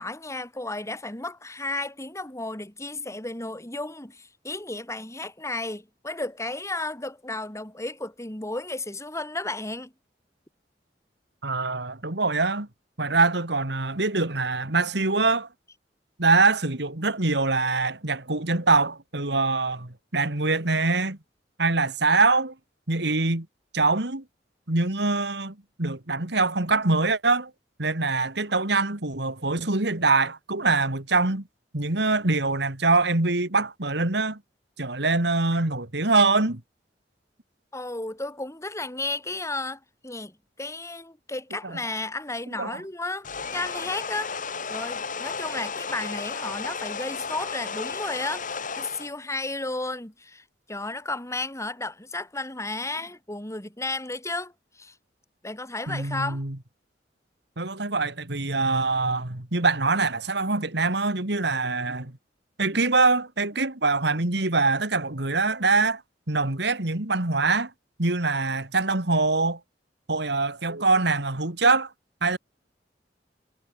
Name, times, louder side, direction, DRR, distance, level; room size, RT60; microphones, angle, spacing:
voice 1, 0.0-9.9 37.7-44.3 44.7-54.9 55.4-56.4, left 2 dB, 15° left, 5.0 m, -33 dB
voice 2, 11.4-12.7 13.0-15.5 16.2-21.2 21.6-22.5 22.9-23.5 23.7-24.2 24.7-27.5 27.8-31.4 31.7-34.4 34.8-36.6 41.6-41.8 42.6-42.8 55.9-56.6 57.6-62.1 62.6-66.0 66.3-67.7 68.0-69.6 70.1-71.9 72.2-72.4, right 3 dB, 70° right, 2.6 m, -24 dB
sound 1, 43.2-49.1, left 5 dB, 50° left, 3.1 m, -33 dB
head